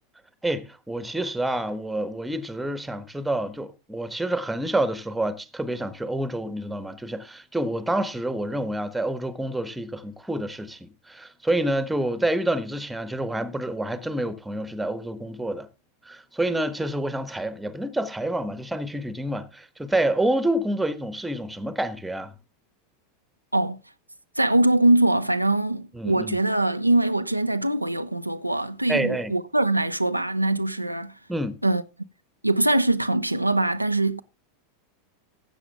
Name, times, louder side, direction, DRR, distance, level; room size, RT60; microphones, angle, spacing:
voice 1, 0.4-15.7 16.0-22.3 25.9-26.4 28.9-29.3 31.3-31.6, right 1 dB, 5° right, 1.3 m, -28 dB
voice 2, 24.4-31.1 31.6-31.8 32.4-34.2, right 2 dB, 90° right, 0.6 m, -22 dB
15.5 x 7.7 x 3.5 m
figure-of-eight pair, 85°, 0 cm